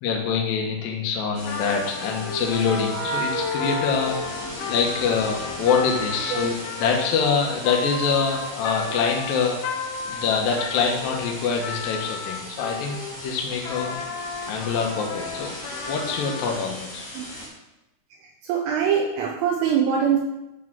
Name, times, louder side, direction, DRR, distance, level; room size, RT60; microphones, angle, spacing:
voice 1, 0.0-4.2 4.7-9.6 10.1-14.0 14.5-15.5 15.9-17.0, left 5 dB, 90° left, 0 dB, 2.0 m, -25 dB
sound 1, 1.3-17.5, left 1 dB, 40° left, 2.4 m, -38 dB
sound 2, 1.4-5.3, left 1 dB, 55° right, 1.0 m, -32 dB
Trumpet, 1.5-13.2 13.6-16.6, left 5 dB, 70° left, 2.5 m, -34 dB
voice 2, 18.2-20.2, right 8 dB, 80° right, -2 dB, 3.3 m, -23 dB
11.0 x 3.7 x 6.1 m, 0.92 s
omnidirectional pair, 5.8 m